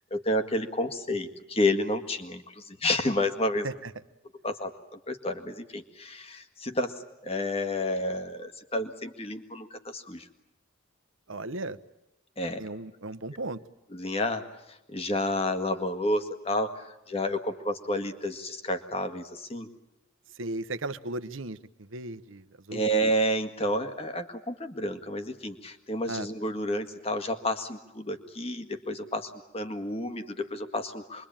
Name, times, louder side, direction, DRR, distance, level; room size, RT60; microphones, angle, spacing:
voice 1, 0.1-3.7 4.4-10.3 12.4-12.6 13.9-19.7 22.7-31.3, left 1 dB, 30° left, 8 dB, 1.8 m, -30 dB
voice 2, 11.3-11.8 12.6-13.6 20.4-22.8 26.1-26.3, right 2 dB, 80° right, 12 dB, 1.0 m, -36 dB
27.0 x 23.0 x 8.9 m, 0.93 s
head